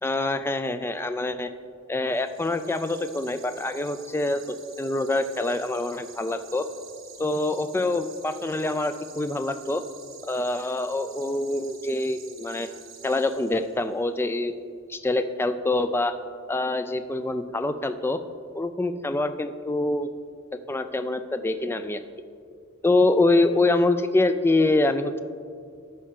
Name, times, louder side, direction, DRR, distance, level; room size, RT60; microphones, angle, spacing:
voice 1, 0.0-1.5 1.9-6.7 7.2-9.8 10.2-12.7 13.0-14.6 14.9-16.2 16.5-18.2 18.5-20.1 20.7-22.0 22.8-25.2, left 2 dB, 10° left, 10 dB, 0.3 m, -25 dB
sound 1, 2.1-13.9, right 7 dB, 80° right, 1.1 m, -48 dB
13.0 x 5.4 x 3.7 m, 2.2 s
head